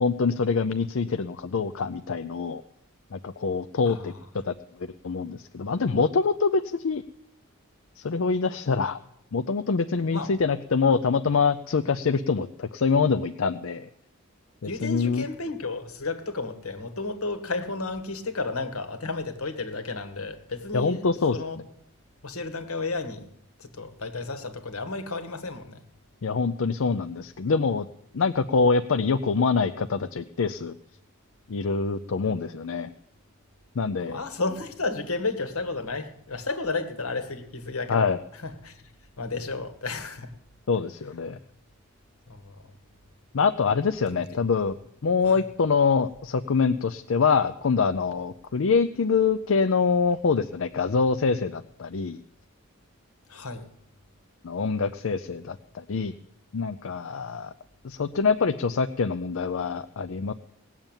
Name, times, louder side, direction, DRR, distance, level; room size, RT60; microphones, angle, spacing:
voice 1, 0.0-2.6 3.1-4.1 4.4-7.0 8.0-9.0 9.3-13.9 14.6-15.2 20.7-21.4 26.2-27.9 28.1-30.8 31.5-32.9 33.8-34.2 37.9-38.2 40.7-41.4 43.3-44.8 45.0-52.2 54.4-56.1 56.5-57.5 57.8-60.3, left 5 dB, 60° left, 10 dB, 0.5 m, -25 dB
voice 2, 14.6-21.0 21.3-21.6 22.2-23.3 23.6-25.8 34.0-38.8 39.2-40.3 42.3-42.7 44.1-44.2 45.2-45.3 53.3-53.7, left 3 dB, 80° left, 8 dB, 1.7 m, -32 dB
18.0 x 7.3 x 8.9 m, 0.75 s
head